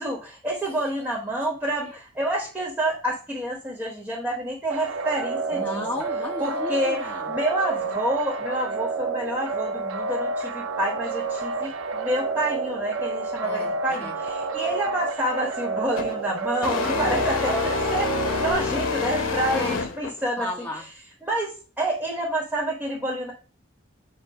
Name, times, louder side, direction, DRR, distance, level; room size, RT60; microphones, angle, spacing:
voice 1, 0.0-5.8 6.4-7.0 7.3-18.1 18.4-20.5 21.2-21.5 21.8-23.3, right 1 dB, 10° right, -2 dB, 1.5 m, -28 dB
sound 1, 4.7-18.5, right 3 dB, 85° right, 0.6 m, -29 dB
voice 2, 5.5-7.3 13.4-14.1 16.8-17.3 19.5-19.8 20.4-20.8, left 1 dB, 10° left, -2 dB, 1.3 m, -34 dB
sound 2, 16.0-16.2 16.6-20.2, left 4 dB, 90° left, 1.0 m, -27 dB
7.5 x 2.5 x 5.6 m, 0.36 s
head